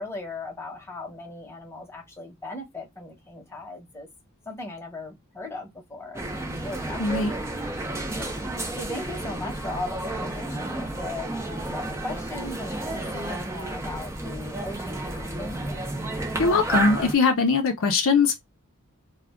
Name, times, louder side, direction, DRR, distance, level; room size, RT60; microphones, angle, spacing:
voice 1, 0.0-4.1 4.5-7.4 8.1-8.4 8.8-15.9, left 2 dB, 10° left, 0.9 m, -38 dB
sound 1, 6.1-17.1, right 2 dB, 15° right, 0.5 m, -31 dB
voice 2, 7.0-7.3 16.4-18.4, left 4 dB, 60° left, 0.5 m, -21 dB
2.3 x 2.1 x 3.4 m
head